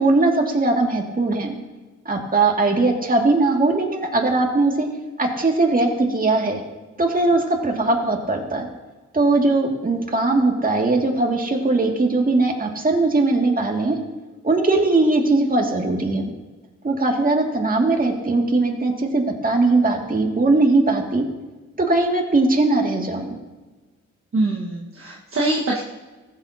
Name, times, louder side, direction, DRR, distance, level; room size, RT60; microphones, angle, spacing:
voice 1, 0.0-1.5 2.1-4.9 5.2-6.6 7.0-8.7 9.1-14.0 14.4-16.3 16.8-21.3 21.9-23.3, right 2 dB, 25° right, 1 dB, 2.1 m, -20 dB
voice 2, 24.3-25.8, right 2 dB, 40° right, -3 dB, 1.4 m, -23 dB
15.0 x 7.4 x 2.7 m, 1.2 s
supercardioid pair, 55°, 32 cm